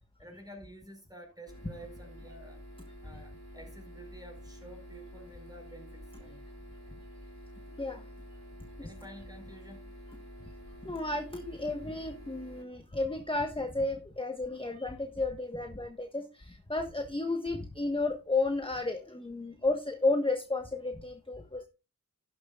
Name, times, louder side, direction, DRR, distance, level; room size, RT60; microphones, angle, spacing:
voice 1, 0.2-2.6 3.0-6.4 8.8-9.9, right 1 dB, 10° right, 5.1 m, -50 dB
sound 1, 1.5-12.6, equal, 50° left, 3.8 m, -49 dB
voice 2, 10.8-21.6, left 2 dB, 15° left, 1.3 m, -32 dB
12.5 x 10.5 x 2.4 m
wide cardioid pair, 55°, 33 cm